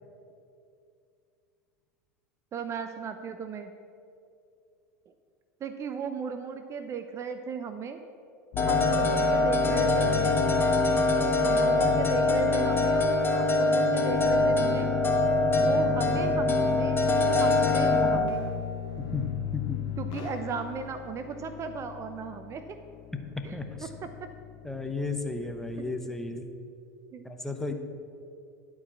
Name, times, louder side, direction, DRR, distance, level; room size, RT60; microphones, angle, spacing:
voice 1, 2.5-3.7 5.6-8.0 8.7-10.4 11.4-14.9 15.6-17.0 17.4-18.4 20.0-22.7 23.4-23.6 24.0-24.3 27.1-27.2, right 6 dB, 35° right, 8 dB, 0.6 m, -36 dB
sound 1, 8.5-25.9, left 12 dB, 55° left, 0.7 m, -36 dB
sound 2, 8.6-18.2, left 2 dB, 25° left, 1.3 m, -24 dB
voice 2, 23.5-23.9 24.6-26.5 27.2-27.7, left 3 dB, 5° left, 5 dB, 0.9 m, -33 dB
11.0 x 4.8 x 7.1 m, 2.5 s
hypercardioid pair, 90°, 9 cm